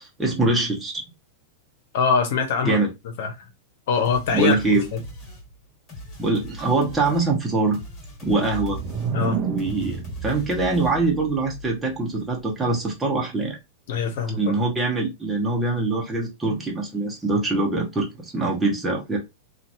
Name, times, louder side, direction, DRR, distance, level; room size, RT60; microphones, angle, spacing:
voice 1, 0.2-1.0 2.6-2.9 4.3-4.8 6.2-7.8 8.2-8.8 9.1-13.6 14.4-19.2, right 3 dB, 10° right, 1.1 m, -23 dB
voice 2, 1.9-2.8 3.2-3.3 3.9-4.6 4.9-5.0 9.1-9.4 13.9-14.4, left 5 dB, 65° left, 1.1 m, -22 dB
sound 1, 4.0-11.2, left 1 dB, 30° left, 1.7 m, -41 dB
sound 2, 8.2-12.0, right 6 dB, 40° right, 0.5 m, -31 dB
2.9 x 2.5 x 2.7 m
supercardioid pair, 135°, 0 cm